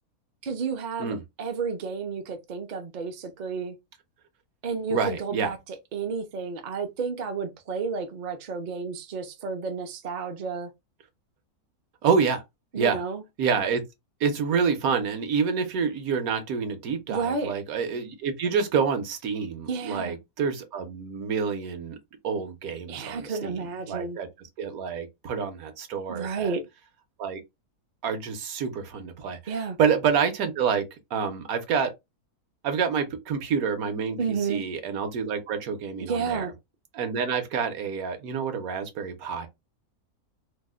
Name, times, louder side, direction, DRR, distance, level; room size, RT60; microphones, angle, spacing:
voice 1, 0.4-3.8 4.6-10.7 12.7-13.2 17.1-17.5 19.7-20.1 22.9-24.2 26.1-26.7 29.5-29.8 34.2-34.6 36.0-36.5, right 5 dB, 55° right, 0.5 m, -31 dB
voice 2, 4.9-5.5 12.0-12.4 12.8-13.0 13.4-13.8 14.2-22.0 22.2-23.5 23.9-24.3 24.6-26.5 27.2-27.4 28.0-29.4 29.8-30.8 31.1-31.9 32.6-34.2 34.5-36.5 36.9-39.5, right 6 dB, 75° right, 1.2 m, -27 dB
2.9 x 2.0 x 3.4 m
omnidirectional pair, 1.6 m